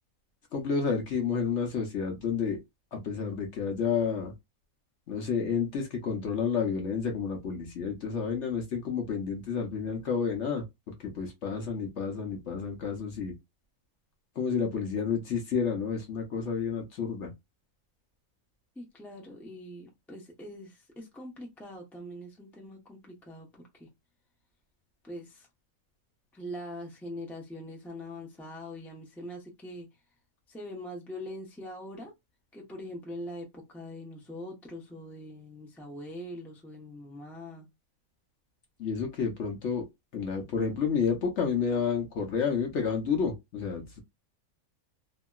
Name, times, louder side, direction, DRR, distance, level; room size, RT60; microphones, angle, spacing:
voice 1, 0.5-2.6 2.9-4.3 5.1-13.3 14.4-17.3 38.8-39.8 40.1-44.0, left 6 dB, 60° left, 0.9 m, -30 dB
voice 2, 18.7-23.9 25.0-25.5 26.3-29.9 30.5-32.1 32.5-37.7, left 1 dB, ahead, 0.6 m, -43 dB
2.8 x 2.7 x 2.3 m
omnidirectional pair, 1.5 m